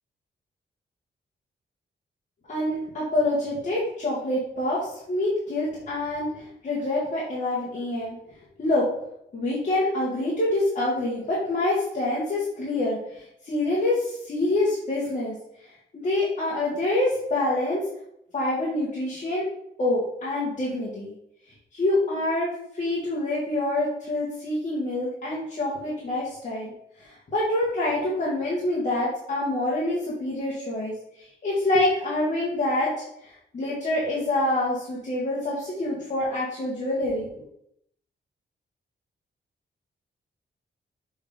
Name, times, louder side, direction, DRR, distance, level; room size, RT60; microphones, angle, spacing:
voice 1, 2.5-8.1 8.6-8.9 9.3-15.3 15.6-17.8 18.3-19.5 19.8-21.1 21.7-26.7 27.0-32.9 33.2-37.3, left 1 dB, 40° left, -7 dB, 1.5 m, -26 dB
6.4 x 3.4 x 5.1 m, 0.75 s
wide cardioid pair, 180°, 19 cm